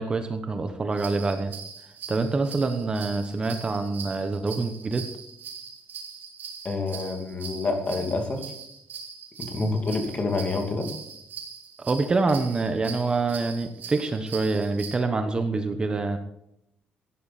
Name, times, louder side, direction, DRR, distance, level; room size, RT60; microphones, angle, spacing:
voice 1, 0.0-1.5 2.1-5.1 9.6-9.8 11.8-16.2, right 3 dB, 25° right, 7 dB, 1.2 m, -26 dB
sound 1, 0.9-15.0, right 6 dB, 65° right, 3.7 m, -41 dB
voice 2, 6.6-8.4 9.4-10.9, left 3 dB, 35° left, 4 dB, 2.7 m, -28 dB
15.0 x 11.0 x 4.3 m, 0.78 s
cardioid pair, 135°, 4 cm